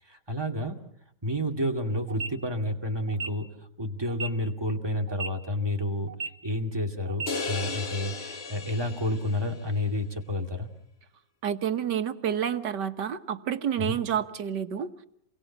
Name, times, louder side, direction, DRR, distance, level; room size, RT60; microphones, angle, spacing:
voice 1, 0.1-0.8 1.2-3.5 3.8-6.1 6.4-10.7 13.8-14.0, left 1 dB, 15° right, 2 dB, 2.4 m, -30 dB
sound 1, 2.1-2.3 3.1-3.3 4.1-4.3 5.1-5.3 6.1-6.3 7.1-7.3, right 5 dB, 45° right, 1.6 m, -33 dB
sound 2, 7.3-9.6, left 4 dB, 40° left, 1.5 m, -35 dB
voice 2, 11.4-14.9, right 9 dB, 80° right, 9 dB, 1.9 m, -29 dB
28.5 x 23.0 x 7.3 m, 0.74 s
omnidirectional pair, 1.8 m